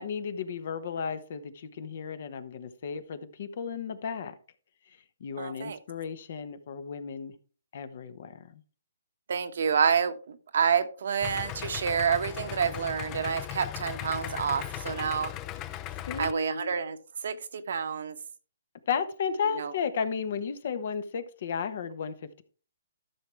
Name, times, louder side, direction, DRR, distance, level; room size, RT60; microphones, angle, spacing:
voice 1, 0.0-4.4 4.9-7.3 7.7-8.6 16.1-16.7 18.9-22.4, left 6 dB, 55° left, 1.1 m, -34 dB
voice 2, 5.4-5.8 9.3-15.3 16.2-17.0 17.2-18.2 19.5-19.7, right 7 dB, 65° right, 1.1 m, -28 dB
Idling, 11.2-16.3, left 13 dB, 25° left, 0.5 m, -38 dB
13.0 x 6.3 x 3.4 m
hypercardioid pair, 140°, 0 cm